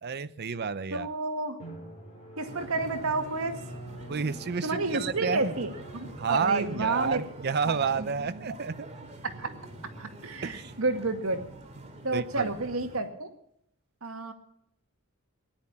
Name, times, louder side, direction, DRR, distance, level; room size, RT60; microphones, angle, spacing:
voice 1, 0.0-1.1 4.1-5.5 6.2-8.9 10.4-10.7 12.1-12.5, right 5 dB, 50° right, 13 dB, 0.6 m, -30 dB
voice 2, 0.9-1.6 2.4-3.6 4.6-7.2 7.7-8.1 8.5-8.6 9.2-9.5 10.0-11.4 12.0-13.3 14.0-14.3, right 3 dB, 75° right, 5 dB, 2.0 m, -31 dB
Drum, 1.6-10.9, right 1 dB, 35° left, 7.4 m, -48 dB
sound 1, 2.5-13.0, right 1 dB, 35° right, 2.5 m, -46 dB
17.5 x 10.5 x 7.3 m, 0.72 s
head